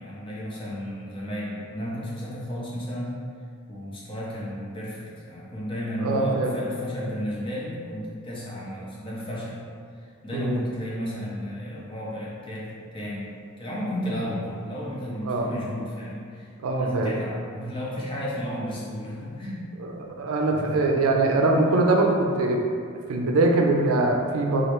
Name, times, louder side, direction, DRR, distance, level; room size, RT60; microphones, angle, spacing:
voice 1, 0.0-3.2 3.7-9.6 10.0-13.3 13.6-19.7 20.5-20.8, equal, 25° left, -6 dB, 0.5 m, -33 dB
voice 2, 6.0-6.5 10.3-10.6 15.2-15.5 16.6-17.2 19.8-22.6 23.1-24.6, right 2 dB, 85° right, 1 dB, 0.4 m, -22 dB
3.1 x 2.4 x 2.9 m, 2.2 s
head